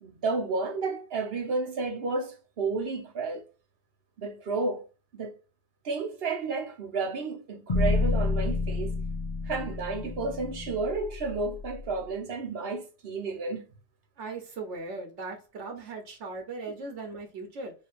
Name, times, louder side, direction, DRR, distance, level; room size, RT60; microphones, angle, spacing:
voice 1, 0.0-3.4 4.2-4.9 5.1-5.4 5.8-9.0 9.4-13.6, right 3 dB, 60° right, 1.0 m, -31 dB
sound 1, 7.7-11.9, left 3 dB, 50° left, 0.4 m, -29 dB
voice 2, 14.2-17.7, right 3 dB, 90° right, 1.2 m, -38 dB
4.5 x 2.8 x 2.4 m
omnidirectional pair, 1.2 m